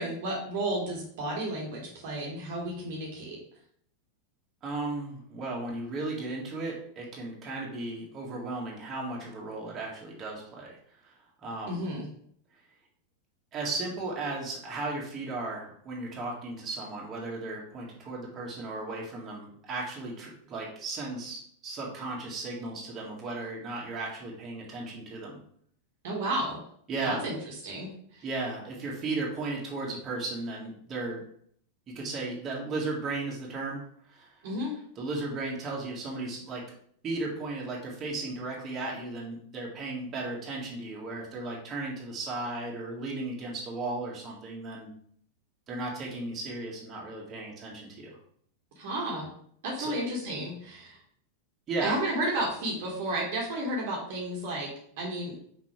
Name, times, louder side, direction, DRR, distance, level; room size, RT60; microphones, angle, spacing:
voice 1, 0.0-3.4 11.7-12.1 26.0-26.6 27.0-27.3 27.6-28.3 34.4-34.7 48.8-49.3 49.6-51.0 51.8-54.7 55.0-55.3, right 1 dB, 50° right, -2 dB, 1.8 m, -32 dB
voice 2, 4.6-10.8 11.0-11.1 11.4-11.8 13.5-25.4 26.9-27.3 28.2-31.2 32.0-33.8 34.1-34.3 35.0-36.6 37.0-44.9 45.7-48.1 49.8-49.9 51.7-52.0, right 3 dB, 25° right, -3 dB, 2.0 m, -35 dB
6.0 x 5.0 x 3.3 m, 0.62 s
figure-of-eight pair, 90°, 0 cm